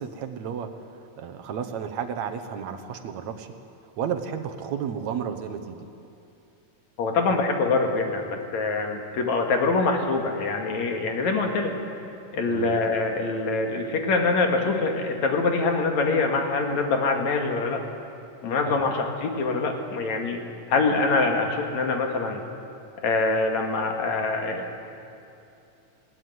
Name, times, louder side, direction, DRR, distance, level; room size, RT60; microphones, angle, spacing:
voice 1, 0.0-3.5 4.0-5.9 12.5-12.7 18.6-18.8, right 7 dB, 70° right, 8 dB, 2.4 m, -32 dB
voice 2, 7.0-11.8 12.3-17.8 18.4-20.4 20.7-22.4 23.0-24.7, left 3 dB, 70° left, 3 dB, 3.3 m, -24 dB
20.5 x 18.5 x 9.6 m, 2.7 s
omnidirectional pair, 3.4 m